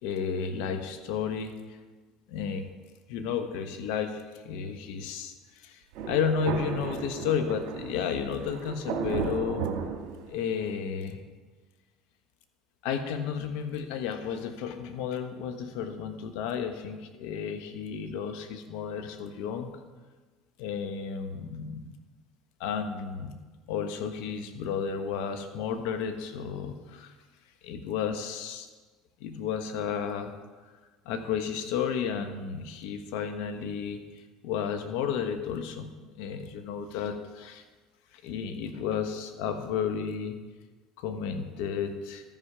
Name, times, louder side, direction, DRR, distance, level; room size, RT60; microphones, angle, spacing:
voice 1, 0.0-1.8 2.3-2.7 3.1-9.8 10.3-11.2 12.8-19.7 20.6-22.0 22.6-23.4 23.7-27.1 27.6-28.7 29.2-30.3 31.0-35.9 36.2-37.6 38.1-40.4 41.0-42.2, left 7 dB, 75° left, 7 dB, 0.9 m, -32 dB
Thunder, 5.9-10.7, right 6 dB, 70° right, 1.5 m, -35 dB
13.5 x 5.6 x 4.9 m, 1.3 s
supercardioid pair, 105°, 0 cm